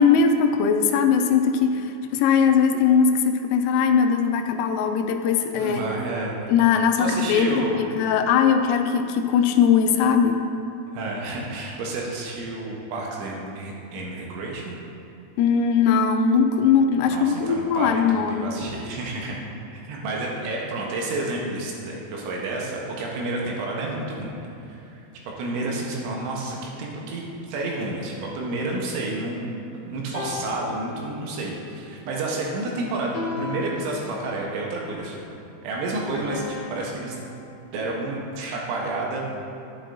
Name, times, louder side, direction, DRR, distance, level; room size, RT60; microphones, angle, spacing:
voice 1, 0.0-5.9 6.5-10.4 15.4-18.5, left 6 dB, 85° left, 6 dB, 3.2 m, -20 dB
voice 2, 5.6-6.4 7.0-7.8 10.9-14.8 17.1-19.4 19.9-24.3 24.7-29.6 29.9-35.2 35.6-36.4 36.7-37.2 37.7-39.4, right 2 dB, 75° right, -2 dB, 3.2 m, -30 dB
sound 1, 27.8-29.6 30.1-31.6 33.1-34.6 36.1-37.6, left 5 dB, 70° left, 2.9 m, -37 dB
11.0 x 8.4 x 2.6 m, 2.8 s
omnidirectional pair, 5.9 m